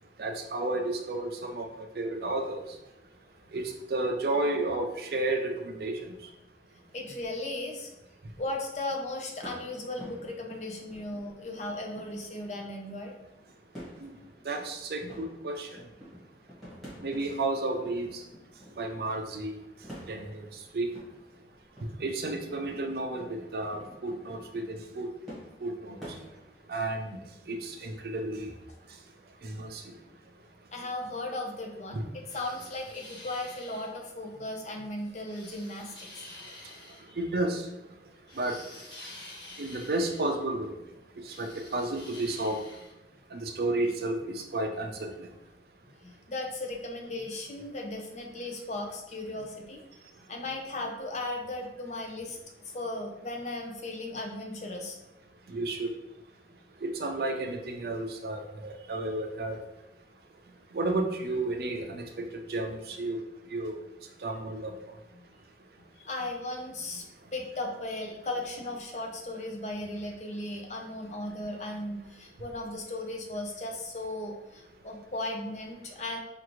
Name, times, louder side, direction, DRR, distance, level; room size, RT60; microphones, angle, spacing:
voice 1, 0.2-2.6 3.5-6.0 14.0-14.1 14.4-15.7 17.0-18.2 18.8-19.5 20.1-20.5 20.7-20.9 22.0-25.1 25.6-26.0 26.7-27.2 27.5-28.5 29.4-29.9 31.9-32.0 37.2-37.7 38.4-38.6 39.6-40.8 41.2-42.6 43.3-45.3 55.5-55.9 56.8-59.6 60.7-63.2 63.5-63.8 64.2-64.7, right 2 dB, 60° right, 4 dB, 0.5 m, -32 dB
voice 2, 6.9-7.9 8.4-13.1 15.0-15.1 30.7-32.1 32.3-36.2 37.1-37.2 46.0-49.8 50.3-55.0 66.0-76.2, left 2 dB, 40° left, 1 dB, 0.6 m, -36 dB
sound 1, 9.4-26.8, equal, ahead, 1.4 m, -49 dB
sound 2, 32.3-33.9 35.3-37.0 38.3-40.3 41.2-42.9, left 2 dB, 25° left, 1.3 m, -48 dB
4.7 x 2.5 x 3.0 m, 0.89 s
head